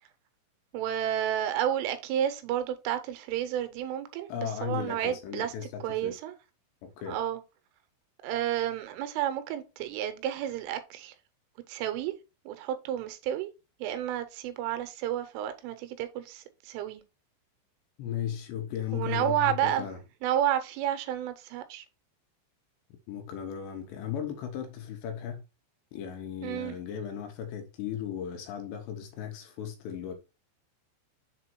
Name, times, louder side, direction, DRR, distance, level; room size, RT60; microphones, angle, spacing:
voice 1, 0.7-5.5 5.8-6.3 7.1-7.4 8.2-11.1 11.7-12.1 12.5-13.5 13.8-17.0 18.9-19.9 20.2-21.9 26.4-26.8, right 11 dB, 85° right, 3.4 m, -31 dB
voice 2, 4.3-6.1 6.8-7.2 18.0-20.0 23.1-25.4 25.9-30.2, left 9 dB, 75° left, 2.8 m, -36 dB
7.1 x 3.8 x 4.4 m
omnidirectional pair, 5.6 m